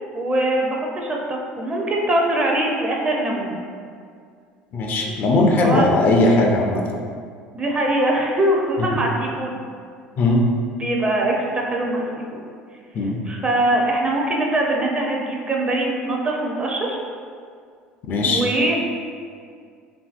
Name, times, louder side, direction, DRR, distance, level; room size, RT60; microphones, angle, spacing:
voice 1, 0.1-3.6 5.6-5.8 7.5-9.7 10.8-12.1 12.3-12.4 13.3-17.0 18.2-18.7, right 1 dB, 25° right, -1 dB, 0.5 m, -22 dB
voice 2, 4.7-6.8 8.8-8.9 10.2-10.5 12.9-13.2 18.1-18.4, left 2 dB, 50° left, 0 dB, 0.4 m, -18 dB
2.7 x 2.6 x 2.4 m, 2.1 s
hypercardioid pair, 80°, 4 cm